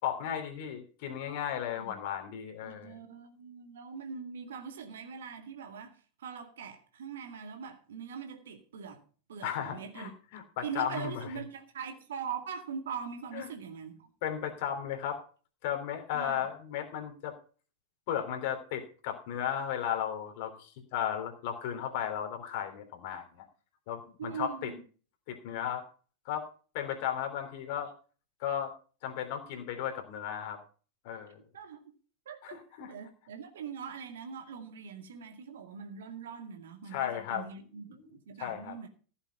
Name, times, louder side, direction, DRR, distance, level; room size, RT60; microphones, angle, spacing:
voice 1, 0.0-3.0 9.4-11.3 13.3-13.5 14.2-15.2 15.6-17.3 18.1-23.4 23.9-24.7 25.3-25.8 26.2-26.5 26.7-27.9 28.4-28.7 29.0-30.6 31.0-31.4 32.4-32.9 36.9-37.4 37.9-38.1 38.4-38.7, left 9 dB, 50° left, 3.3 m, -35 dB
voice 2, 2.6-9.0 9.3-10.1 10.6-14.1 16.1-16.4 24.2-24.8 31.5-31.8 32.3-38.9, right 7 dB, 60° right, 2.2 m, -42 dB
15.0 x 7.3 x 5.3 m
figure-of-eight pair, 90°, 0 cm